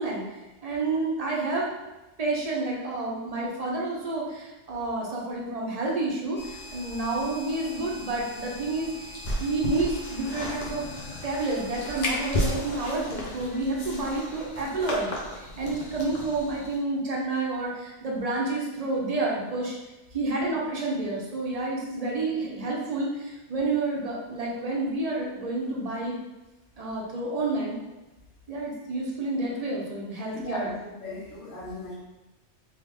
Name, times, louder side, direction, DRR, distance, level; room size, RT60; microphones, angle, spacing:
voice 1, 0.0-1.8 2.2-10.9 11.2-19.7 20.1-26.2 26.8-27.8 28.5-30.7 31.0-31.1, right 2 dB, 40° right, -3 dB, 0.6 m, -29 dB
sound 1, 6.4-16.8, left 1 dB, 45° left, 0.7 m, -35 dB
voice 2, 30.3-30.8 31.0-32.0, left 1 dB, 75° left, -6 dB, 1.3 m, -37 dB
3.4 x 2.3 x 3.4 m, 1.1 s
omnidirectional pair, 1.3 m